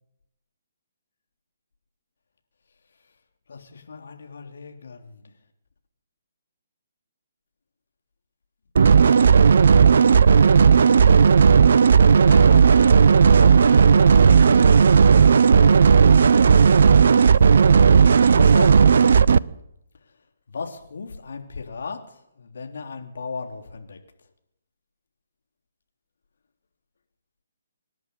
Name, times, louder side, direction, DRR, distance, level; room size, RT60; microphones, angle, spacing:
voice 1, 3.5-5.3 11.9-19.0 20.5-24.0, left 4 dB, 60° left, 4 dB, 3.5 m, -38 dB
sound 1, 8.8-19.4, right 6 dB, 60° right, 0.7 m, -14 dB
25.5 x 11.0 x 9.6 m, 0.82 s
figure-of-eight pair, 135°, 0 cm